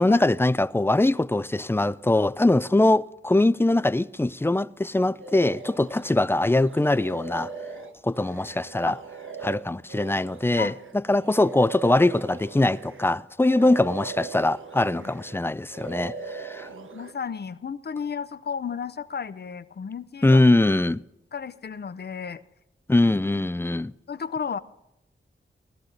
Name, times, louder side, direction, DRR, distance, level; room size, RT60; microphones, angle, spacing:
voice 1, 0.0-7.5 8.0-9.0 9.4-16.7 20.2-21.0 22.9-23.9, left 2 dB, 10° left, 0.4 m, -22 dB
sound 1, 5.2-6.2 6.6-13.2 13.4-15.4 15.7-17.1, right 4 dB, 80° right, 1.2 m, -40 dB
voice 2, 16.7-20.4 21.3-22.4 24.1-24.6, left 6 dB, 55° left, 0.7 m, -33 dB
18.0 x 13.5 x 3.9 m
wide cardioid pair, 80°, 20 cm